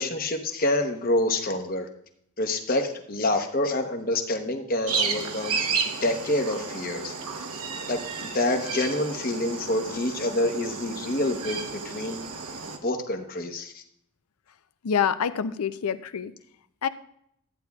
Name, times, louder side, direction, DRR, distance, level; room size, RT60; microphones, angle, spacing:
voice 1, 0.0-1.9 2.4-5.6 6.0-7.1 7.9-12.2 12.8-13.8, left 1 dB, 40° left, 5 dB, 0.9 m, -27 dB
sound 1, 4.9-12.8, right 5 dB, 85° right, 1.0 m, -32 dB
voice 2, 14.8-16.3 16.8-16.9, left 7 dB, 85° left, 13 dB, 0.5 m, -26 dB
13.5 x 9.2 x 2.3 m, 0.71 s
head